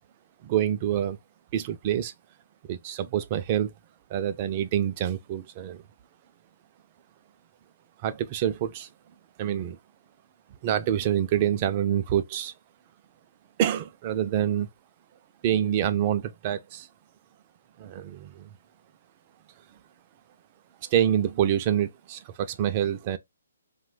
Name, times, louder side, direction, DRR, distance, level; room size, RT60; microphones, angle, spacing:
voice 1, 0.4-1.2 1.5-2.1 2.7-3.7 4.1-5.8 8.0-8.9 9.4-9.8 10.6-12.5 13.6-14.7 15.4-16.9 17.8-18.5 20.9-23.2, right 10 dB, 30° right, 0.3 m, -26 dB
3.0 x 2.2 x 2.3 m
hypercardioid pair, 150°, 0 cm